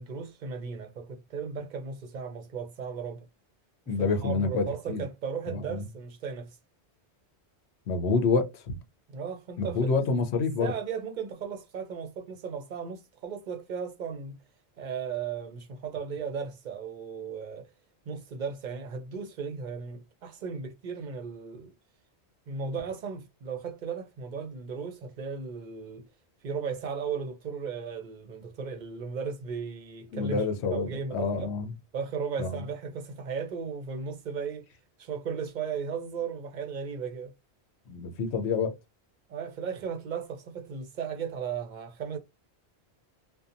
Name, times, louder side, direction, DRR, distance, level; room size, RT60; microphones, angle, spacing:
voice 1, 0.0-3.3 3.9-6.6 9.1-9.9 10.4-14.4 14.8-17.7 18.1-21.7 22.5-26.1 26.4-30.4 30.7-31.5 31.9-34.7 35.0-37.3 39.3-42.2, right 6 dB, 55° right, 0.6 m, -36 dB
voice 2, 3.9-5.0 5.7-5.8 7.9-8.8 9.6-10.7 30.1-31.7 32.4-32.5 37.9-38.7, left 4 dB, 80° left, 0.9 m, -27 dB
2.7 x 2.2 x 2.4 m
omnidirectional pair, 1.1 m